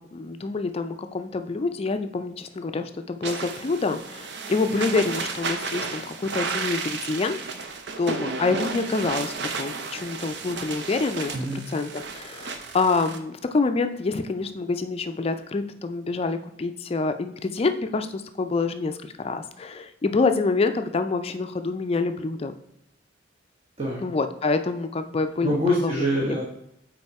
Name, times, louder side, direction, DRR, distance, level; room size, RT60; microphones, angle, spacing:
voice 1, 0.0-7.4 8.0-22.5 24.0-25.9 26.3-26.4, left 3 dB, 30° left, 8 dB, 0.4 m, -27 dB
sound 1, 3.2-13.2, right 4 dB, 60° right, 0.6 m, -33 dB
voice 2, 11.3-11.6 23.8-24.0 25.4-26.4, equal, 35° right, -3 dB, 1.0 m, -25 dB
5.4 x 4.2 x 4.6 m, 0.80 s
head